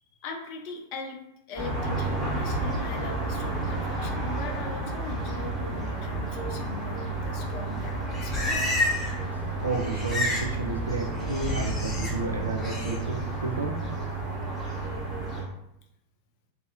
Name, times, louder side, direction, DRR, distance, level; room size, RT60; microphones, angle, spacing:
voice 1, 0.1-1.2 1.5-8.7, left 4 dB, 45° left, 3 dB, 0.5 m, -40 dB
sound 1, 1.6-15.4, right 2 dB, 10° right, 1.1 m, -31 dB
Livestock farm animals working animals, 7.8-9.2 9.5-10.5 10.8-12.1 12.6-13.0, left 2 dB, 15° left, 0.7 m, -31 dB
voice 2, 9.3-13.7, right 3 dB, 75° right, 2 dB, 0.4 m, -32 dB
2.6 x 2.4 x 2.6 m, 0.82 s
figure-of-eight pair, 90°, 0 cm